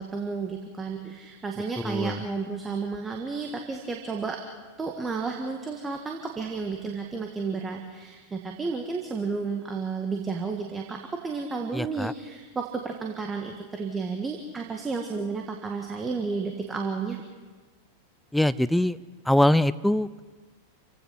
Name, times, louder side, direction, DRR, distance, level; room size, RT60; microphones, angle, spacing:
voice 1, 0.0-4.4 4.8-17.2, right 4 dB, 15° right, 3 dB, 1.8 m, -32 dB
voice 2, 1.8-2.2 11.7-12.1 18.3-19.0 19.3-20.2, left 1 dB, 5° left, 15 dB, 0.5 m, -23 dB
28.5 x 16.5 x 5.8 m, 1.4 s
figure-of-eight pair, 90°, 0 cm